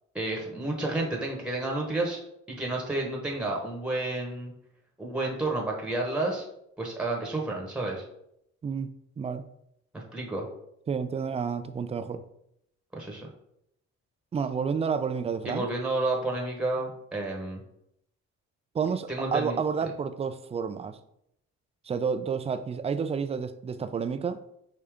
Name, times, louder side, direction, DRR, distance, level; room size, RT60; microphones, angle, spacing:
voice 1, 0.1-2.2 2.5-4.5 5.0-6.5 6.8-8.0 9.9-10.5 12.9-13.3 15.4-17.6 19.1-19.6, right 2 dB, 5° right, -1 dB, 1.0 m, -30 dB
voice 2, 10.9-12.2 14.3-15.7 18.7-21.0 21.9-24.4, right 6 dB, 20° right, 11 dB, 0.3 m, -30 dB
4.9 x 2.7 x 3.4 m, 0.76 s
cardioid pair, 90°, 30 cm